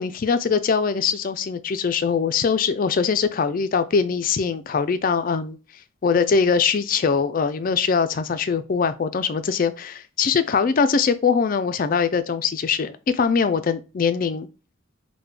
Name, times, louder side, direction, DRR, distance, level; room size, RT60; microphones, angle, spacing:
voice 1, 0.0-5.6 6.0-14.5, left 5 dB, 40° left, 0.3 m, -22 dB
4.8 x 2.2 x 3.3 m
head